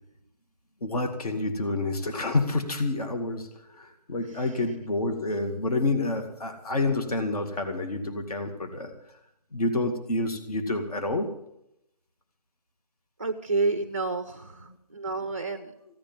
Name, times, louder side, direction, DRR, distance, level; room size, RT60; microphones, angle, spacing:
voice 1, 0.8-8.9 9.5-11.3, left 2 dB, 60° left, 6 dB, 2.2 m, -28 dB
voice 2, 13.2-15.7, right 3 dB, 20° right, 8 dB, 0.5 m, -30 dB
16.0 x 10.5 x 7.2 m, 0.79 s
hypercardioid pair, 175°, 21 cm